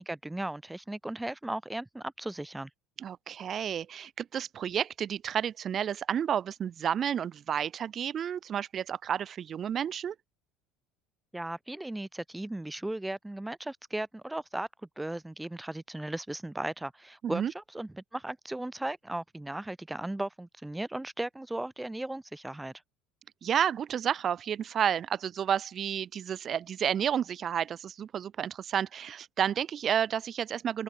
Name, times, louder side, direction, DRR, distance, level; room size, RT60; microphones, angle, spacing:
voice 1, 0.0-2.7 11.3-14.7 15.0-22.7, right 1 dB, 10° right, 0.8 m, -36 dB
voice 2, 3.0-10.1 17.2-17.5 23.4-30.8, right 9 dB, 40° right, 0.8 m, -31 dB
open air
supercardioid pair, 90°, 0 cm